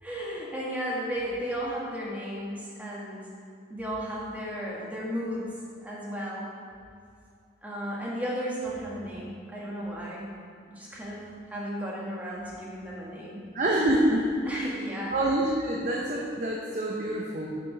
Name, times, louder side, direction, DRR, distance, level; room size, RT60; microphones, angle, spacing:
voice 1, 0.0-3.3 3.7-5.5 5.8-6.5 7.6-10.3 10.7-11.2 11.5-13.4 14.4-15.1, equal, 10° right, -6 dB, 1.6 m, -34 dB
voice 2, 13.5-14.3 15.1-17.6, right 1 dB, 40° right, -2 dB, 0.8 m, -26 dB
7.2 x 6.9 x 5.1 m, 2.4 s
head